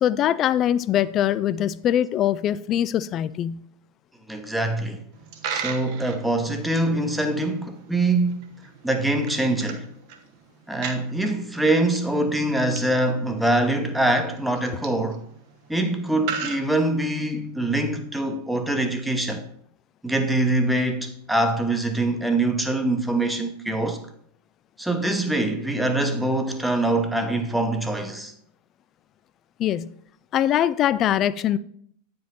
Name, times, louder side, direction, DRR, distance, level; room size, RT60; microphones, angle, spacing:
voice 1, 0.0-3.6 29.6-29.9 30.3-31.6, left 11 dB, 35° left, 0.3 m, -22 dB
voice 2, 4.3-5.0 5.5-8.5 8.8-9.8 10.7-15.2 15.7-19.4 20.0-24.0 24.8-28.3, right 2 dB, 5° right, 1.0 m, -24 dB
Coin (dropping), 5.1-17.4, right 7 dB, 50° right, 1.0 m, -39 dB
8.8 x 5.2 x 4.3 m
figure-of-eight pair, 90°, 0 cm